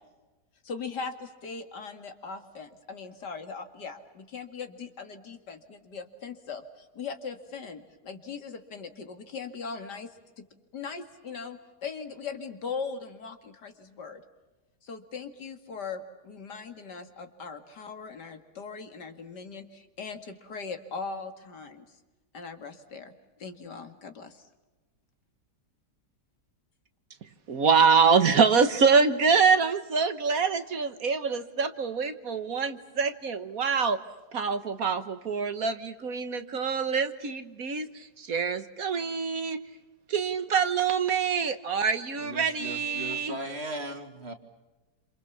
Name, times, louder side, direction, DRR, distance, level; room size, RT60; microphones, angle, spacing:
voice 1, 0.6-10.4 10.7-14.2 14.8-21.9 22.3-23.1 23.4-24.4, left 5 dB, 80° left, 7 dB, 2.7 m, -40 dB
voice 2, 27.5-34.0 34.3-39.6 40.1-43.4, right 5 dB, 60° right, 10 dB, 1.6 m, -25 dB
voice 3, 42.2-44.3, right 1 dB, 40° right, 6 dB, 2.5 m, -37 dB
28.0 x 27.0 x 7.2 m, 1.1 s
omnidirectional pair, 1.8 m